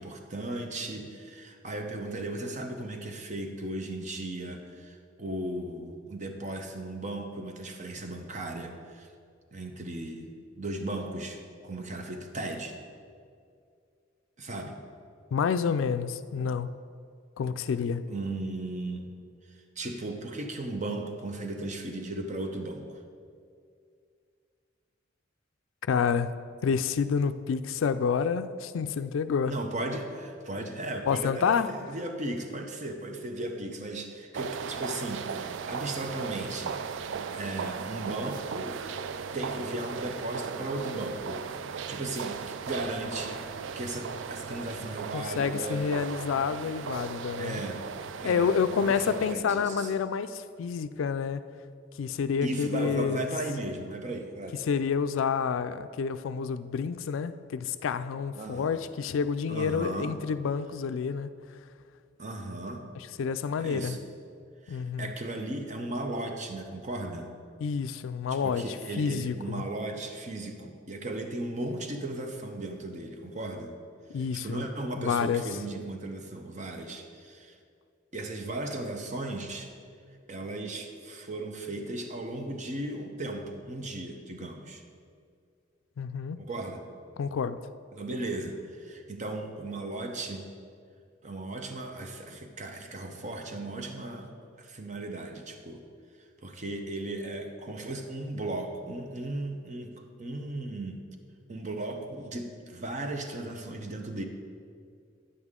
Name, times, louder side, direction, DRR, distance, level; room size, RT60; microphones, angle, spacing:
voice 1, 0.0-9.1 9.5-12.8 14.4-14.8 18.1-19.1 19.8-23.0 29.4-38.8 39.3-41.4 41.9-43.4 43.8-45.8 47.4-47.9 48.2-49.9 52.4-54.6 58.3-58.8 59.5-60.1 62.2-62.8 63.6-64.0 64.6-67.3 68.3-73.7 74.1-77.6 78.1-79.7 80.3-84.8 86.4-86.8 87.9-90.5 91.2-94.3 94.6-95.8 96.4-99.9 100.2-101.0 101.5-104.2, right 2 dB, 40° right, 4 dB, 0.8 m, -36 dB
voice 2, 15.3-16.7 17.4-18.1 25.9-26.3 26.6-29.5 31.1-31.7 45.1-47.6 48.2-51.4 52.0-53.3 54.6-61.3 63.2-64.0 64.7-65.1 67.6-68.6 69.0-69.6 74.1-74.6 75.0-75.4 86.0-86.4 87.2-87.6, left 6 dB, 80° left, 12 dB, 0.3 m, -28 dB
sound 1, 34.3-49.4, right 6 dB, 65° right, 0.3 m, -37 dB
9.7 x 8.1 x 3.7 m, 2.3 s
head